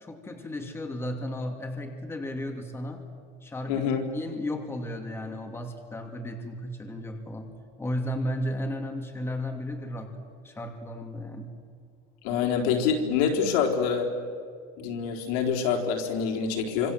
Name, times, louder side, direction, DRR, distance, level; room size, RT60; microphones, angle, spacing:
voice 1, 0.0-3.0 3.4-7.5 7.8-10.1 10.4-11.6, left 1 dB, 15° left, 4 dB, 2.7 m, -34 dB
voice 2, 3.7-4.0 12.2-14.1 14.8-16.9, left 6 dB, 90° left, 2 dB, 4.0 m, -26 dB
26.5 x 26.5 x 7.8 m, 2.1 s
cardioid pair, 145°, 18 cm